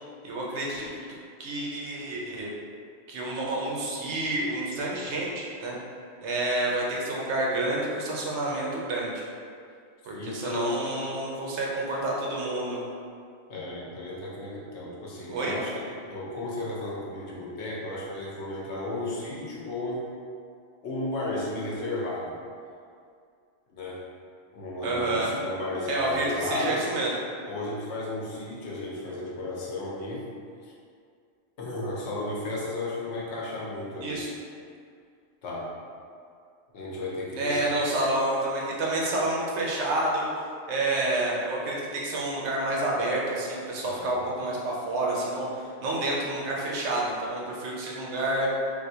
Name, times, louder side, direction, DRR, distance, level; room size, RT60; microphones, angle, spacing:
voice 1, 0.2-2.5 3.1-5.8 6.2-9.2 10.1-12.8 15.3-15.5 24.8-25.3 25.9-27.1 34.0-34.3 37.3-40.3 40.7-48.5, right 2 dB, 80° right, -3 dB, 1.0 m, -29 dB
voice 2, 10.1-10.7 13.5-20.1 20.8-22.4 23.7-24.0 24.5-26.9 27.4-30.2 30.6-30.7 31.6-34.2 35.4-35.7 36.7-38.0 43.8-44.1, left 2 dB, 80° left, -5 dB, 1.0 m, -34 dB
3.5 x 2.6 x 2.7 m, 2.3 s
omnidirectional pair, 1.1 m